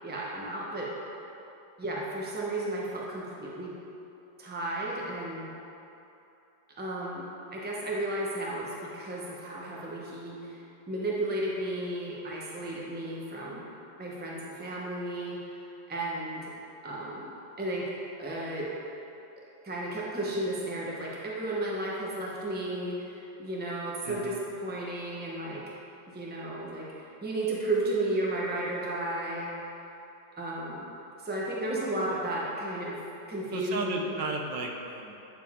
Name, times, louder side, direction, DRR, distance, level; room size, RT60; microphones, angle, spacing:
voice 1, 0.0-0.9 1.8-3.7 4.4-5.5 6.8-7.2 7.5-10.6 10.9-13.7 14.0-15.6 15.9-16.5 16.8-17.3 17.6-17.9 18.2-18.7 19.6-24.3 24.6-25.6 26.1-29.9 30.4-30.9 31.2-33.0 33.3-34.1, right 1 dB, 10° right, -5 dB, 0.8 m, -33 dB
voice 2, 24.0-24.4 33.5-35.2, right 2 dB, 75° right, 1 dB, 1.4 m, -34 dB
9.2 x 6.7 x 3.7 m, 2.9 s
omnidirectional pair, 1.9 m